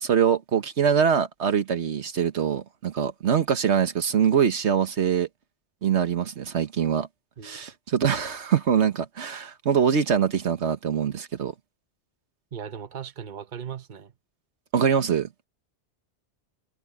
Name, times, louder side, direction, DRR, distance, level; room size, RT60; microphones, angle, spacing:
voice 1, 0.0-5.3 5.8-7.1 7.4-11.5 14.7-15.3, right 7 dB, 80° right, 1.4 m, -23 dB
voice 2, 12.5-14.1, right 8 dB, 45° right, 1.1 m, -38 dB
omnidirectional pair, 1.1 m